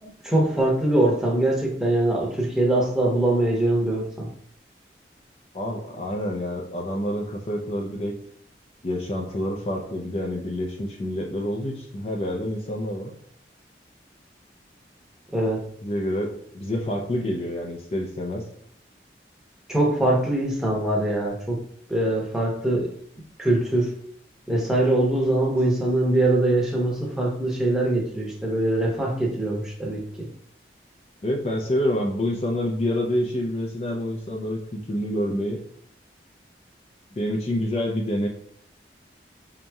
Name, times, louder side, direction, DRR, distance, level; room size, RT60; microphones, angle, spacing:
voice 1, 0.0-4.3 15.3-15.6 19.7-21.6 21.9-22.9 23.4-23.9 24.5-30.3, right 1 dB, 5° right, -2 dB, 0.8 m, -23 dB
voice 2, 5.5-8.2 8.8-13.1 15.8-18.4 31.2-35.6 37.1-38.3, left 1 dB, 35° left, 0 dB, 0.4 m, -27 dB
5.1 x 2.9 x 2.3 m, 0.65 s
head